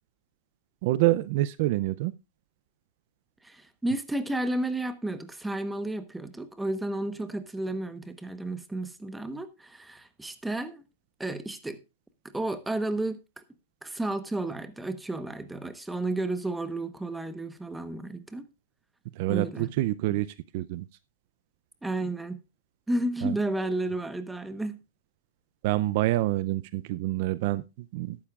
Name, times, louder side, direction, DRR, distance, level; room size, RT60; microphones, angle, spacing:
voice 1, 0.8-2.1 19.2-20.9 23.2-23.4 25.6-28.2, right 17 dB, 50° right, 0.5 m, -27 dB
voice 2, 3.4-10.8 11.2-11.8 12.2-13.4 13.8-18.5 19.3-19.7 21.8-22.4 22.9-24.8, right 2 dB, 5° right, 1.0 m, -32 dB
13.5 x 12.0 x 2.4 m
hypercardioid pair, 145°, 0 cm